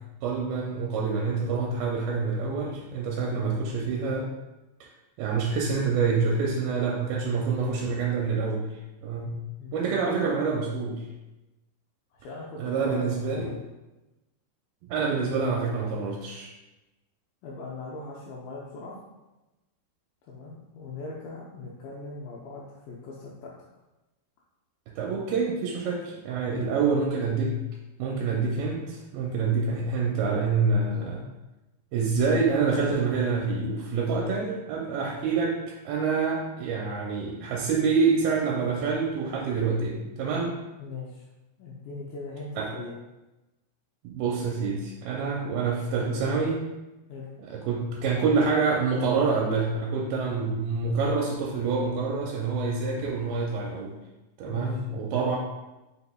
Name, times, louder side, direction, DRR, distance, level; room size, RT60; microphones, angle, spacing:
voice 1, 0.2-4.3 4.8-4.9 5.2-9.3 9.7-11.1 12.6-13.5 14.9-16.5 24.9-27.6 28.0-31.3 31.9-35.6 35.9-40.6 42.6-42.7 44.0-46.7 47.4-53.9 54.4-55.4, right 4 dB, 85° right, -1 dB, 2.4 m, -27 dB
voice 2, 9.3-10.0 12.1-13.7 15.1-15.3 17.4-19.0 20.2-23.5 26.5-26.9 40.8-41.3 41.6-43.0 47.1-47.3 54.5-54.8 55.1-55.2, left 3 dB, 80° left, -4 dB, 2.2 m, -40 dB
5.4 x 3.9 x 2.3 m, 1.0 s
omnidirectional pair, 4.2 m